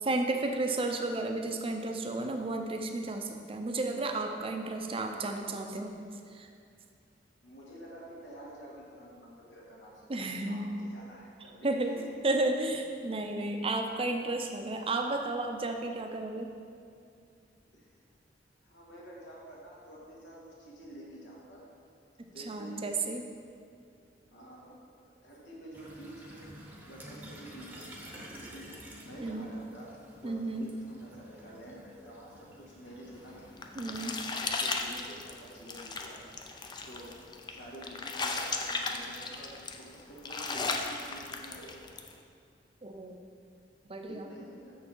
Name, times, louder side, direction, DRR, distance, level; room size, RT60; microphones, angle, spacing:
voice 1, 0.0-5.9 6.3-6.5 10.1-10.6 11.6-11.9 12.2-16.5 22.5-23.2 29.2-29.5 30.2-30.7 33.8-34.2 42.8-43.2 43.9-44.3, right 2 dB, 30° right, 4 dB, 0.6 m, -32 dB
voice 2, 7.4-12.1 17.7-17.9 18.6-21.6 22.3-22.9 24.3-24.8 25.2-28.7 29.0-29.9 30.2-33.4 34.2-36.2 36.9-37.2 37.5-41.8 44.1-44.8, right 1 dB, 85° left, -5 dB, 1.9 m, -49 dB
sound 1, 25.7-34.1, equal, 10° right, 0.9 m, -50 dB
sound 2, 33.2-42.1, left 3 dB, 25° left, 0.5 m, -36 dB
6.6 x 6.4 x 4.6 m, 2.3 s
head